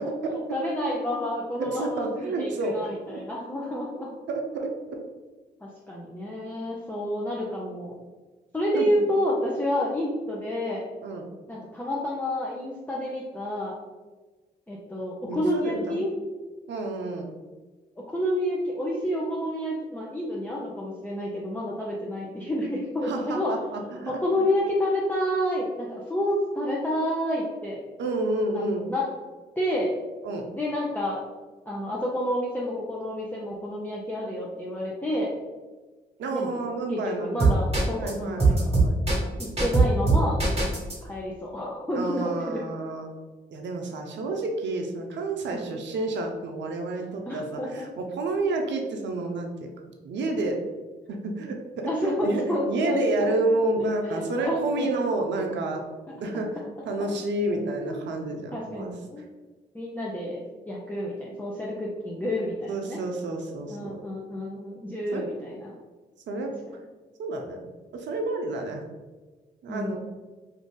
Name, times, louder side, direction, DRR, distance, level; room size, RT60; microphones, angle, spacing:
voice 1, 0.2-4.1 5.6-8.0 8.5-10.8 11.5-13.7 14.7-16.1 18.1-23.5 24.1-27.8 28.5-28.6 28.9-29.1 29.6-29.9 30.5-31.2 31.7-35.3 36.3-36.6 36.9-38.6 39.4-40.4 41.0-42.6 45.5-45.8 47.3-47.8 51.9-53.3 54.0-54.9 57.7-58.0 58.5-59.3 59.7-63.0 63.7-65.7 69.7-70.0, left 1 dB, 10° left, -5 dB, 0.6 m, -29 dB
voice 2, 1.6-3.2 4.3-4.7 8.7-9.0 11.0-11.3 15.3-16.0 16.7-17.3 23.0-24.2 28.0-28.9 30.2-30.5 36.2-37.6 38.0-39.0 41.9-43.1 43.5-49.7 50.0-50.6 51.1-55.8 56.2-58.9 62.7-64.0 65.1-65.2 66.3-66.5 67.2-68.8 69.6-70.0, right 2 dB, 70° right, 3 dB, 0.5 m, -30 dB
sound 1, 37.4-38.1 38.4-40.9, right 3 dB, 35° right, 1.4 m, -20 dB
2.6 x 2.4 x 3.7 m, 1.3 s
supercardioid pair, 40°, 19 cm